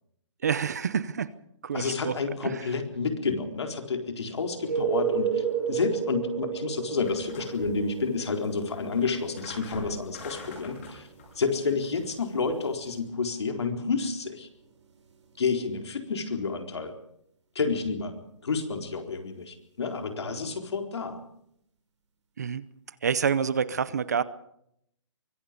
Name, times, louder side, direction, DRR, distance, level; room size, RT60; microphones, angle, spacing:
voice 1, 0.4-1.3 1.6-2.2 2.4-2.6 22.4-22.6 23.0-24.2, right 7 dB, 35° right, 17 dB, 0.7 m, -27 dB
voice 2, 1.7-11.1 11.4-14.5 15.4-16.9 17.5-21.2, left 4 dB, 60° left, 4 dB, 4.2 m, -30 dB
sound 1, 4.5-16.0 20.3-20.4, right 7 dB, 70° right, 5.6 m, -35 dB
sound 2, 7.1-13.0, left 3 dB, 25° left, 7.1 m, -46 dB
24.5 x 22.0 x 5.3 m, 0.73 s
hypercardioid pair, 180°, 16 cm